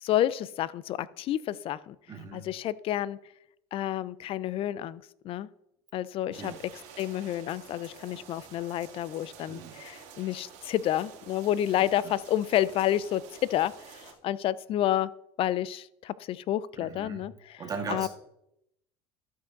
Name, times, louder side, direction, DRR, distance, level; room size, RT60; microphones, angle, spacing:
voice 1, 0.0-2.0 2.3-3.2 3.7-5.5 5.9-6.5 7.0-13.2 13.5-15.1 15.4-17.3 17.9-18.1, left 12 dB, 45° left, 19 dB, 0.4 m, -29 dB
voice 2, 2.1-2.5 6.3-6.6 9.5-9.8 12.0-12.1 16.8-17.3 17.6-18.1, right 5 dB, 30° right, 2 dB, 2.0 m, -38 dB
sound 1, 6.3-14.1, right 7 dB, 65° right, 2.0 m, -50 dB
13.0 x 5.2 x 3.8 m, 0.81 s
supercardioid pair, 105°, 13 cm